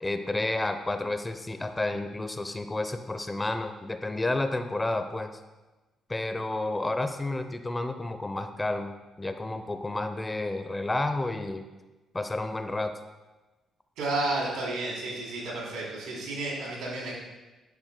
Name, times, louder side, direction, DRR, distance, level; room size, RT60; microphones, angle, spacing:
voice 1, 0.0-5.3 6.1-8.9 9.2-11.7 12.1-12.9, left 2 dB, 15° left, 8 dB, 0.6 m, -30 dB
voice 2, 14.0-17.1, right 2 dB, 90° right, -4 dB, 3.2 m, -31 dB
10.5 x 10.5 x 2.2 m, 1.2 s
cardioid pair, 90°, 0 cm